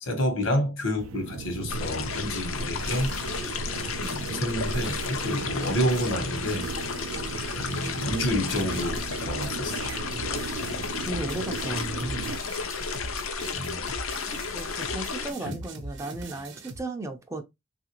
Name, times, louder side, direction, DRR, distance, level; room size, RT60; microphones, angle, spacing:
voice 1, 0.0-3.1 4.4-6.7 7.6-9.8 13.5-13.8 14.7-14.8 15.4-15.6, equal, 70° left, 1.0 m, -29 dB
sound 1, 1.0-12.4, right 5 dB, 85° right, 0.3 m, -37 dB
sound 2, 1.7-15.3, left 5 dB, 90° left, 0.6 m, -33 dB
sound 3, 2.6-16.8, right 3 dB, 60° right, 0.7 m, -43 dB
voice 2, 4.0-4.4 11.1-12.3 14.5-17.4, right 2 dB, 15° right, 0.4 m, -35 dB
3.1 x 2.5 x 2.8 m
head